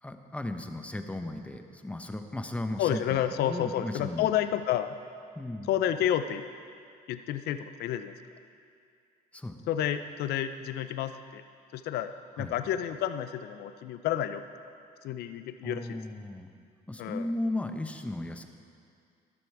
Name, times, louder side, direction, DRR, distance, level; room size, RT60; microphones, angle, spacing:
voice 1, 0.0-4.3 5.4-5.7 9.3-9.6 12.4-12.5 15.6-16.5 16.9-18.5, left 1 dB, 10° left, 7 dB, 0.8 m, -35 dB
voice 2, 2.8-5.0 5.7-6.4 7.1-8.1 9.7-11.4 11.7-12.1 12.4-14.4 15.0-16.0 17.0-17.3, left 11 dB, 70° left, 10 dB, 0.6 m, -30 dB
12.0 x 12.0 x 4.7 m, 2.3 s
cardioid pair, 110°, 17 cm